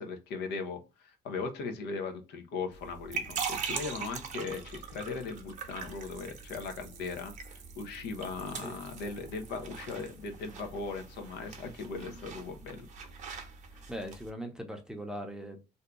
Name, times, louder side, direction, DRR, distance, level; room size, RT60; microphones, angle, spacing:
voice 1, 0.0-7.3 7.8-12.9, left 4 dB, 80° left, 0.8 m, -38 dB
sound 1, 2.7-14.3, right 6 dB, 45° right, 0.7 m, -42 dB
voice 2, 13.9-15.6, equal, 5° right, 0.6 m, -40 dB
2.7 x 2.3 x 3.6 m
cardioid pair, 110°, 17 cm